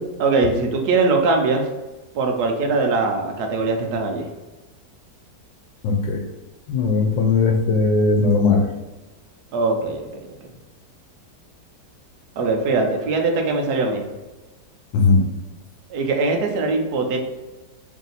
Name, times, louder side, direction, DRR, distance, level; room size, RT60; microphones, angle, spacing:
voice 1, 0.2-1.7 2.1-4.3 9.5-10.1 12.4-14.0 15.9-17.2, right 3 dB, 70° right, 3 dB, 1.1 m, -21 dB
voice 2, 5.8-6.2 6.7-8.6 14.9-15.2, left 4 dB, 90° left, 1 dB, 1.3 m, -18 dB
3.3 x 2.7 x 3.9 m, 1.1 s
omnidirectional pair, 1.9 m